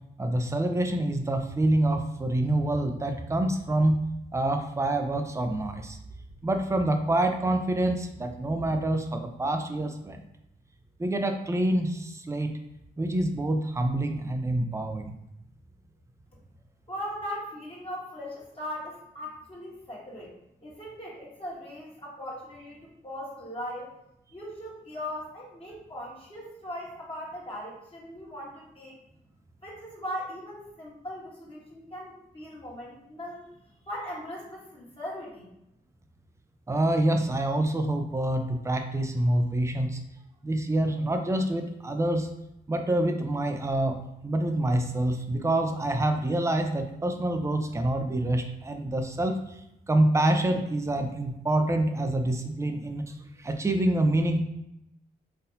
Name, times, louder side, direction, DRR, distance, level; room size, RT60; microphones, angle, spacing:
voice 1, 0.2-4.0 4.3-6.0 6.4-10.2 11.0-12.5 13.0-15.1 36.7-40.0 40.4-42.3 42.7-43.9 44.2-49.6 49.9-54.4, right 1 dB, 15° right, 5 dB, 0.5 m, -26 dB
voice 2, 16.9-20.3 20.6-23.9 24.3-29.0 29.6-33.4 33.9-35.5, equal, 30° left, -5 dB, 1.4 m, -39 dB
4.0 x 2.6 x 2.7 m, 0.83 s
cardioid pair, 60°, 18 cm